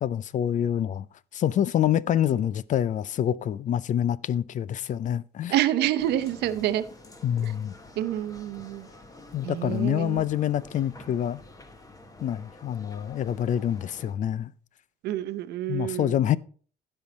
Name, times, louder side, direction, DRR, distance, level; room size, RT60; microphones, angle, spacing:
voice 1, 0.0-1.1 1.3-5.5 7.2-7.7 9.3-11.4 12.2-14.5 15.7-16.4, left 10 dB, 50° left, 0.5 m, -26 dB
voice 2, 5.5-6.8 7.4-7.5 8.0-8.9 9.4-10.2 15.0-16.2, right 12 dB, 75° right, 0.8 m, -27 dB
sound 1, 6.0-14.1, left 2 dB, 20° left, 1.5 m, -48 dB
15.0 x 5.6 x 4.2 m
cardioid pair, 110°, 17 cm